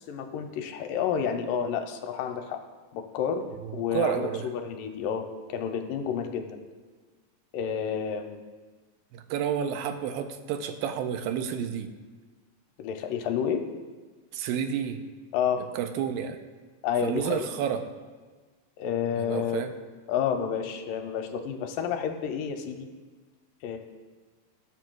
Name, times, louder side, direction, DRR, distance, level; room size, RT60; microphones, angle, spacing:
voice 1, 0.0-2.6 2.9-3.5 3.7-6.6 7.5-8.4 12.8-13.6 15.3-15.6 16.8-17.5 18.8-19.7 20.1-22.9 23.6-23.8, left 8 dB, 80° left, 5 dB, 2.2 m, -30 dB
voice 2, 3.9-4.4 9.1-11.9 14.3-15.0 15.7-16.4 17.0-17.8 19.1-19.7, right 8 dB, 90° right, 7 dB, 2.4 m, -30 dB
19.0 x 7.7 x 2.3 m, 1.4 s
omnidirectional pair, 4.1 m